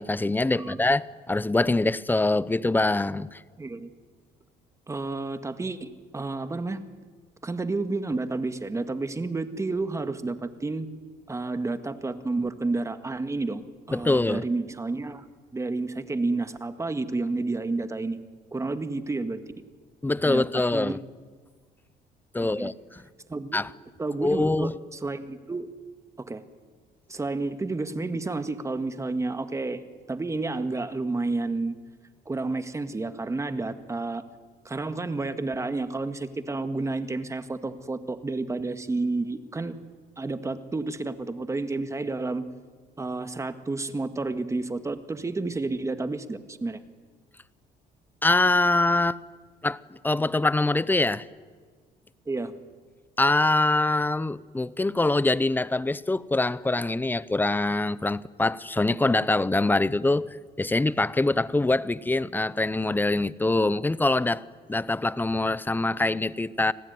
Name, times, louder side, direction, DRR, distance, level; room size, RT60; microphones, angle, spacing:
voice 1, 0.0-3.4 13.9-14.4 20.0-21.0 22.3-23.0 23.5-23.7 24.2-24.7 48.2-49.2 49.6-49.8 50.0-51.3 53.2-64.4 64.7-66.7, left 2 dB, 10° left, 0.7 m, -24 dB
voice 2, 3.6-3.9 4.9-6.8 7.4-10.9 11.3-15.3 15.5-18.2 18.5-19.4 20.2-21.0 22.4-22.7 23.3-23.6 24.0-25.7 26.2-26.4 27.1-31.8 32.2-34.2 34.6-39.8 40.2-42.4 43.0-46.8 52.2-52.5, right 3 dB, 15° right, 1.7 m, -30 dB
29.5 x 19.5 x 9.6 m
cardioid pair, 110°, 17 cm